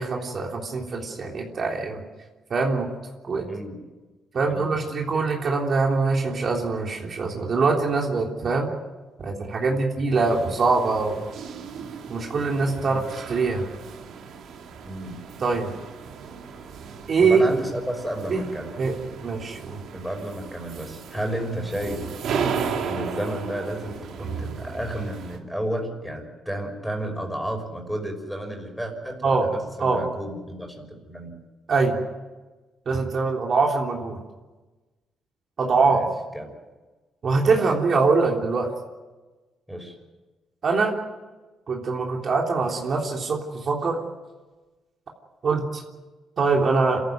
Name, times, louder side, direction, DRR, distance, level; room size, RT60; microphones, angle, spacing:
voice 1, 0.0-2.0 2.5-2.9 3.2-3.5 4.3-8.7 9.2-11.2 12.1-13.6 15.4-15.7 17.1-17.4 18.3-18.4 18.8-18.9 19.2-19.8 29.2-29.5 29.8-30.0 31.7-32.0 32.9-34.2 35.6-36.0 37.2-38.7 40.6-40.9 41.7-44.0 45.4-45.8 46.4-47.0, right 4 dB, 50° right, 0 dB, 3.5 m, -23 dB
voice 2, 3.5-3.8 4.5-4.8 5.1-5.2 12.8-13.1 14.9-15.2 17.2-18.7 19.9-22.0 22.8-31.4 35.8-36.1 36.3-36.5 37.5-37.8 39.7-40.0, right 1 dB, ahead, 4 dB, 5.9 m, -32 dB
sound 1, 10.2-25.4, right 6 dB, 75° right, 2.9 m, -35 dB
27.5 x 14.5 x 9.4 m, 1.2 s
cardioid pair, 90°, 0 cm